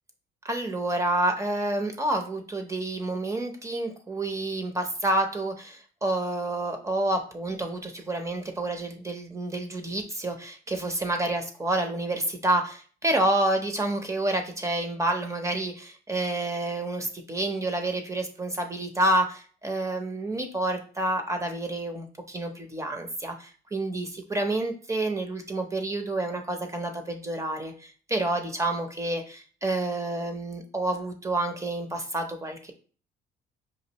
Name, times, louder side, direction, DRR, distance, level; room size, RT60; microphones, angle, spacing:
voice 1, 0.4-32.7, right 1 dB, 20° right, 4 dB, 0.7 m, -29 dB
5.2 x 2.5 x 2.9 m, 0.40 s
cardioid pair, 110°, 17 cm